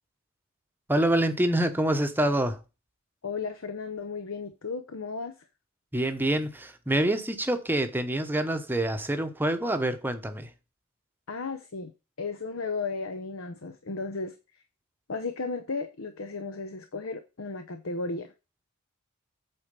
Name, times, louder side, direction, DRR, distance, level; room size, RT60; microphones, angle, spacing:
voice 1, 0.9-2.6 5.9-10.5, right 1 dB, 10° right, 1.0 m, -26 dB
voice 2, 3.2-5.3 11.3-11.9 12.2-14.4 15.1-18.3, left 4 dB, 65° left, 0.8 m, -34 dB
8.5 x 4.4 x 5.3 m
head